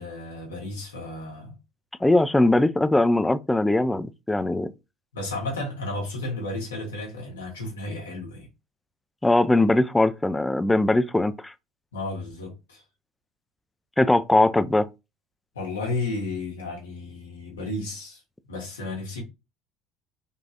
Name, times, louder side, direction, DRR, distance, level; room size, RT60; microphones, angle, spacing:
voice 1, 0.0-1.5 5.1-8.5 11.9-12.8 15.5-18.2 18.5-19.2, left 2 dB, 85° left, 1.3 m, -33 dB
voice 2, 2.0-4.7 9.2-11.5 14.0-14.9, left 2 dB, 10° left, 0.3 m, -21 dB
3.8 x 2.4 x 2.8 m
hypercardioid pair, 70°, 0 cm